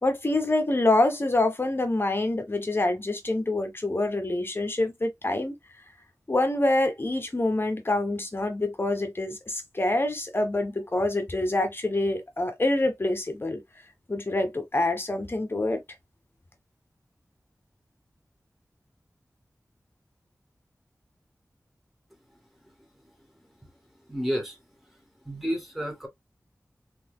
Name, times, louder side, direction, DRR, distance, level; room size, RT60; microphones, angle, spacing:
voice 1, 0.0-5.5 6.3-13.6 14.1-15.8, left 2 dB, 40° left, 1.3 m, -26 dB
voice 2, 23.6-24.6 24.9-25.0 25.2-26.1, equal, 5° right, 2.1 m, -32 dB
3.5 x 3.3 x 2.2 m
wide cardioid pair, 65°, 6 cm